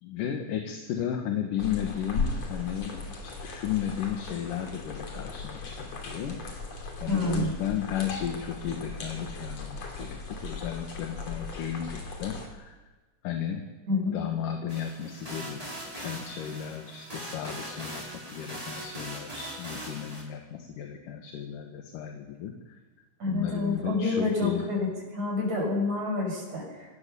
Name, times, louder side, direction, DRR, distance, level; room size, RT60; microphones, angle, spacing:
voice 1, 0.0-6.4 7.0-12.8 13.2-13.6 14.1-15.6 16.0-22.5 23.3-24.7, left 9 dB, 65° left, 3 dB, 2.9 m, -34 dB
sound 1, 1.6-12.5, left 4 dB, 45° left, 3.7 m, -37 dB
voice 2, 7.1-7.5 13.9-14.2 23.2-26.9, left 2 dB, 50° right, 0 dB, 8.1 m, -28 dB
sound 2, 14.7-20.2, right 1 dB, 10° right, 4.1 m, -40 dB
24.0 x 19.0 x 7.0 m, 1.2 s
omnidirectional pair, 4.5 m